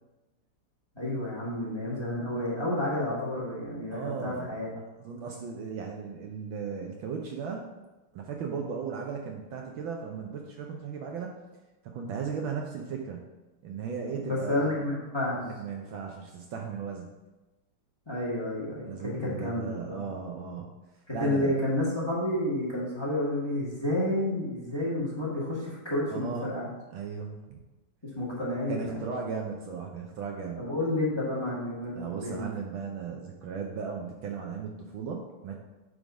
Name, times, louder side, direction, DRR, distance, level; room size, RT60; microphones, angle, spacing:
voice 1, 1.0-4.7 14.2-15.4 18.1-20.0 21.1-26.7 28.2-29.0 30.6-32.5, left 1 dB, 10° left, -7 dB, 1.8 m, -30 dB
voice 2, 3.9-4.6 5.0-7.7 8.1-11.4 11.8-13.3 13.6-14.8 15.3-17.1 18.8-20.7 21.1-21.5 26.1-26.6 26.9-27.4 28.7-30.7 31.9-35.5, right 6 dB, 70° right, 1 dB, 1.4 m, -36 dB
8.2 x 3.8 x 5.1 m, 1.1 s
omnidirectional pair, 2.4 m